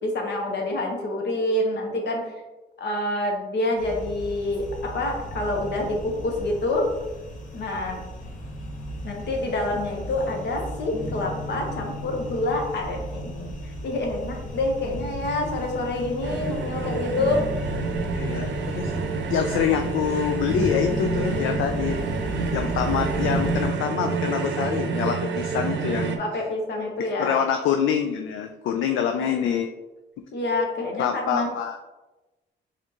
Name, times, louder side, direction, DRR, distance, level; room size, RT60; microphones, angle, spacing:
voice 1, 0.0-2.3 2.8-6.8 7.5-8.0 9.0-17.4 22.6-22.7 26.2-27.4 29.1-29.6 30.3-31.5, left 2 dB, 60° left, 1 dB, 1.1 m, -27 dB
sound 1, 3.8-23.6, left 1 dB, 40° left, 0.9 m, -34 dB
sound 2, 16.2-26.2, right 5 dB, 65° right, 0.7 m, -28 dB
voice 2, 18.1-19.0 19.3-22.0 22.5-26.2 27.2-29.7 31.0-31.8, left 8 dB, 75° left, 5 dB, 0.4 m, -25 dB
4.3 x 3.7 x 3.0 m, 1.1 s
cardioid pair, 90°, 20 cm